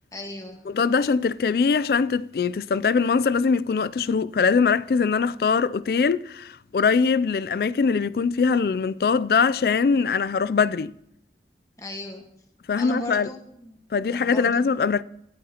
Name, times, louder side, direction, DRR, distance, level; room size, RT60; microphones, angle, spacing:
voice 1, 0.1-0.6 7.3-7.4 11.8-12.2 12.8-13.8 14.1-14.6, left 1 dB, 20° left, 1.4 m, -36 dB
voice 2, 0.7-10.9 12.7-13.3 13.9-15.0, left 5 dB, 55° left, 0.3 m, -22 dB
16.5 x 12.0 x 2.9 m
head